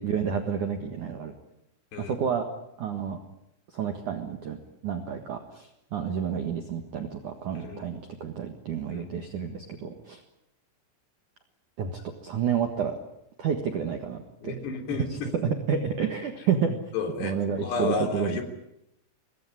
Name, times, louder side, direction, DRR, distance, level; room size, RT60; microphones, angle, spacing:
voice 1, 0.0-1.3 2.0-2.5 2.8-3.2 3.7-4.6 4.8-10.2 11.8-11.9 12.2-12.9 13.4-14.6 15.0-16.8 17.2-18.4, right 7 dB, 60° right, 5 dB, 2.1 m, -30 dB
voice 2, 7.6-8.0 8.9-9.2 14.4-15.3 16.9-17.3 17.6-18.4, left 4 dB, 55° left, 5 dB, 5.3 m, -31 dB
25.0 x 20.0 x 9.9 m, 0.82 s
omnidirectional pair, 6.0 m